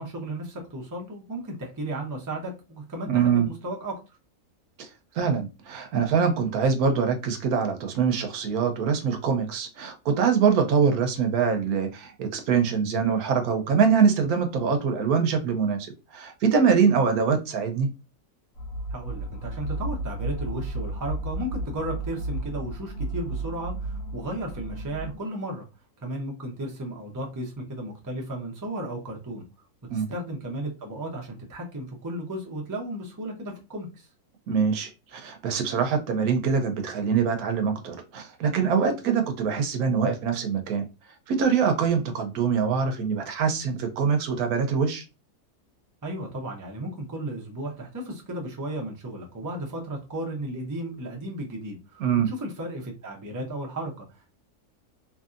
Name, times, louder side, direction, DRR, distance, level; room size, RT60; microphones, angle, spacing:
voice 1, 0.0-4.0 18.9-25.6 26.0-29.4 29.9-34.1 46.0-54.4, right 1 dB, 30° right, 0.3 m, -34 dB
voice 2, 3.1-3.5 4.8-4.9 5.2-15.9 16.1-17.9 29.9-30.1 34.5-40.8 41.3-45.0 52.0-52.3, right 6 dB, 75° right, 1.1 m, -24 dB
sound 1, 18.6-25.2, right 2 dB, 65° left, 1.1 m, -33 dB
2.9 x 2.6 x 2.4 m
omnidirectional pair, 1.6 m